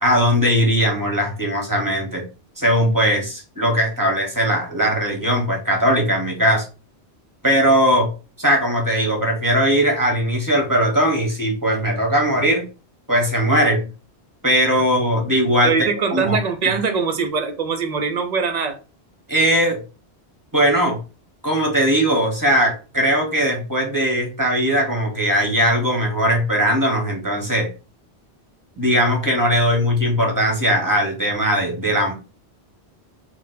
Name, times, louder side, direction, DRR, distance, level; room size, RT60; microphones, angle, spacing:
voice 1, 0.0-2.2 2.6-6.6 7.4-8.1 8.4-12.6 13.1-13.8 14.4-16.4 16.6-16.7 19.3-19.8 20.5-21.0 21.4-27.7 28.8-32.1, equal, 20° right, 1 dB, 1.1 m, -19 dB
voice 2, 15.6-18.8, right 5 dB, 50° right, 8 dB, 0.6 m, -22 dB
4.3 x 2.2 x 4.0 m, 0.33 s
omnidirectional pair, 1.1 m